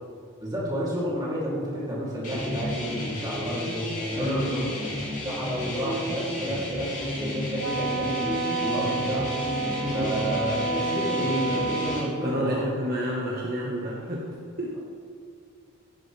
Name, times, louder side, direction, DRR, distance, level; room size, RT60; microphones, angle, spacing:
voice 1, 0.4-4.7 5.2-9.5 9.9-12.7, equal, 15° right, -7 dB, 3.0 m, -31 dB
sound 1, 2.2-12.0, left 1 dB, 35° left, 2.9 m, -32 dB
voice 2, 4.2-4.6 9.8-10.2 12.2-14.8, equal, 45° right, -4 dB, 1.5 m, -30 dB
Wind instrument woodwind instrument, 7.6-12.1, right 2 dB, 60° right, 0.9 m, -29 dB
15.5 x 10.5 x 3.4 m, 2.2 s
head